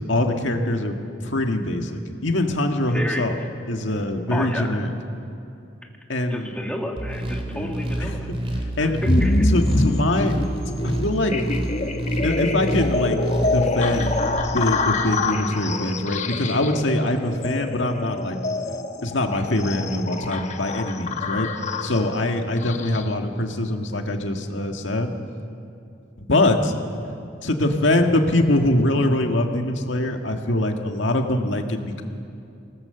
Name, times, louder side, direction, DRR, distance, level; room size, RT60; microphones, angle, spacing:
voice 1, 0.1-3.4 3.7-4.9 6.1-6.5 7.5-8.2 8.8-9.0 9.5-10.3 10.8-11.3 12.2-14.2 14.5-18.4 19.0-21.5 21.8-25.1 26.2-26.7 27.4-32.0, left 1 dB, 80° left, 4 dB, 1.7 m, -23 dB
voice 2, 2.9-3.5 4.3-4.8 6.3-8.3 8.8-8.9 9.2-9.5, equal, 5° left, 1 dB, 1.9 m, -31 dB
sound 1, 7.0-14.5, right 1 dB, 30° right, 2.8 m, -29 dB
sound 2, 9.1-23.1, left 2 dB, 40° left, 1.1 m, -26 dB
24.0 x 18.5 x 6.9 m, 2.6 s
head